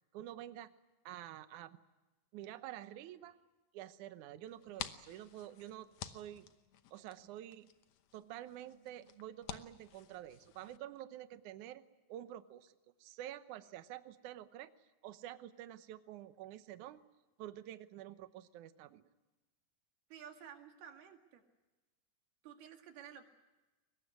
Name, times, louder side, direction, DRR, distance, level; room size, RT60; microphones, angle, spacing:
voice 1, 0.1-0.7 1.1-1.8 2.3-3.4 3.7-6.5 6.9-7.7 8.1-11.8 12.1-14.7 15.0-17.0 17.4-19.0, right 12 dB, 70° right, 12 dB, 2.1 m, -49 dB
sound 1, 4.5-7.4 8.1-9.8, right 4 dB, 90° left, 8.3 m, -71 dB
sound 2, 4.5-10.8, left 10 dB, 70° left, 1.7 m, -51 dB
voice 2, 20.1-21.4 22.4-23.3, right 8 dB, 90° right, 4 dB, 4.1 m, -53 dB
23.0 x 21.0 x 9.6 m, 1.1 s
omnidirectional pair, 4.4 m